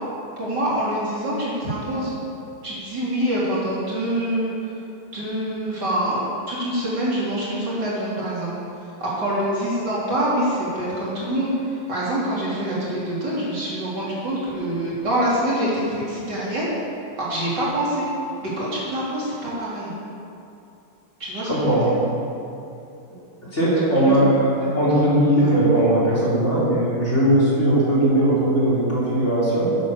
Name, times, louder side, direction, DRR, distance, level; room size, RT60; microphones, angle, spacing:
voice 1, 0.4-2.1 2.6-4.8 5.1-8.5 9.0-16.7 17.2-18.1 18.4-19.9 21.2-21.9 23.8-24.2 24.6-24.7 25.3-25.5, right 1 dB, 50° right, -8 dB, 4.1 m, -25 dB
voice 2, 21.5-21.9 23.5-29.8, right 1 dB, 30° left, -7 dB, 3.9 m, -19 dB
12.5 x 10.0 x 7.2 m, 2.7 s
omnidirectional pair, 2.4 m